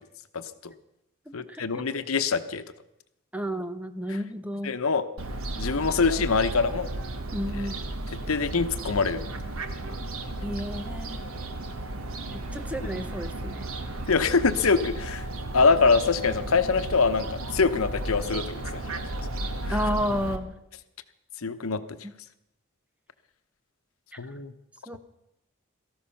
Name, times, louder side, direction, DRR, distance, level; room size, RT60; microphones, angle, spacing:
voice 1, 0.3-0.7 1.3-2.6 4.6-5.0 5.6-6.9 7.6-7.7 8.3-9.2 12.8-12.9 14.1-15.3 15.5-19.0 19.6-19.8 21.4-21.8 24.2-24.5, left 4 dB, 90° left, 10 dB, 0.9 m, -24 dB
voice 2, 1.3-1.8 3.3-4.8 7.3-7.8 10.4-11.3 12.3-13.7 19.7-20.5 24.1-24.2 24.9-25.0, equal, 5° right, 10 dB, 0.7 m, -32 dB
Fowl, 5.2-20.4, right 2 dB, 85° right, 1.3 m, -34 dB
18.0 x 14.0 x 5.8 m, 0.84 s
head